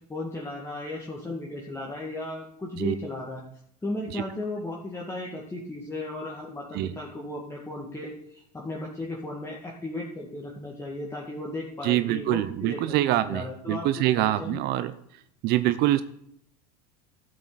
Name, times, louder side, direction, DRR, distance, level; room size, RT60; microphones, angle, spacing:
voice 1, 0.1-3.4 3.8-12.8 13.1-13.9 14.1-14.6, left 2 dB, 15° left, -3 dB, 2.0 m, -35 dB
voice 2, 11.8-14.9 15.4-16.0, right 14 dB, 55° right, 13 dB, 0.6 m, -25 dB
12.0 x 7.8 x 4.1 m, 0.72 s
hypercardioid pair, 95°, 20 cm